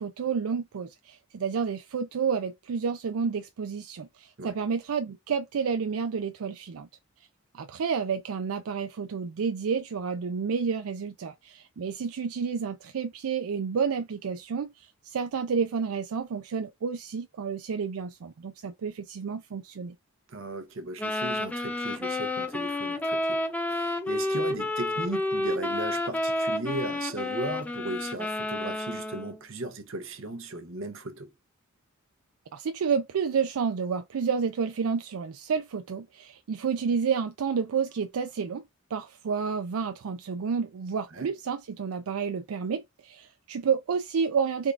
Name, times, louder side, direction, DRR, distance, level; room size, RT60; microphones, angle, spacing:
voice 1, 0.0-6.9 7.5-20.0 32.5-38.6 38.9-44.7, right 6 dB, 80° right, 0.4 m, -30 dB
voice 2, 20.3-23.4 23.7-31.3 41.1-41.3, right 2 dB, 65° right, 0.8 m, -36 dB
sound 1, 21.0-29.4, left 2 dB, 5° left, 0.5 m, -30 dB
3.6 x 2.4 x 3.2 m
head